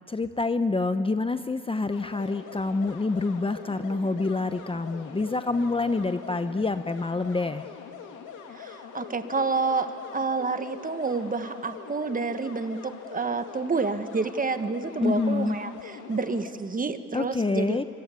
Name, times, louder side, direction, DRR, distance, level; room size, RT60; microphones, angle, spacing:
voice 1, 0.1-7.6 15.0-15.6 17.1-17.8, left 3 dB, 20° left, 10 dB, 0.8 m, -27 dB
sound 1, 1.9-16.5, left 7 dB, 90° left, 2.6 m, -43 dB
voice 2, 8.5-17.8, right 4 dB, 30° right, 9 dB, 1.4 m, -29 dB
25.5 x 25.0 x 8.4 m, 2.5 s
cardioid pair, 90°, 30 cm